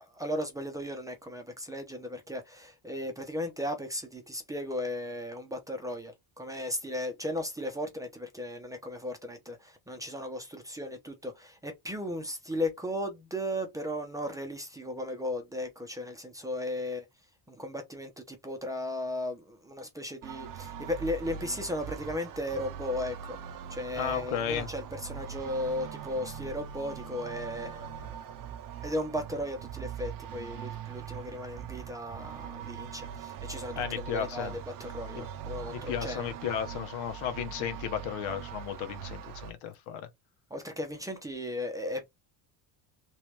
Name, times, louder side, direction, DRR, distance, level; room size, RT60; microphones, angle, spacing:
voice 1, 0.0-17.0 17.5-28.4 28.8-36.3 40.5-42.0, left 1 dB, 10° right, 0.6 m, -36 dB
sound 1, 20.2-39.5, right 8 dB, 45° right, 0.6 m, -42 dB
voice 2, 23.9-24.7 33.7-34.5 35.1-35.2 35.7-40.1, left 9 dB, 85° left, 1.1 m, -34 dB
3.2 x 3.1 x 3.1 m
cardioid pair, 155°, 46 cm